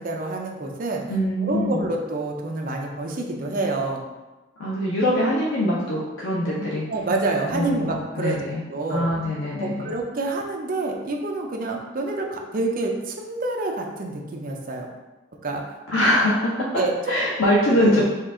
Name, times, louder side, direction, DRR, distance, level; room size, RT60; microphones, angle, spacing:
voice 1, 0.0-1.0 1.4-4.0 6.9-8.4 8.7-9.0 9.6-14.9 15.4-15.6 16.8-16.9 17.7-18.0, right 2 dB, 45° right, 1 dB, 0.5 m, -27 dB
voice 2, 1.1-1.8 4.6-6.8 7.5-8.6 8.9-9.9 15.9-16.7 17.1-18.0, equal, 85° left, -5 dB, 0.7 m, -23 dB
4.4 x 2.4 x 3.7 m, 1.1 s
head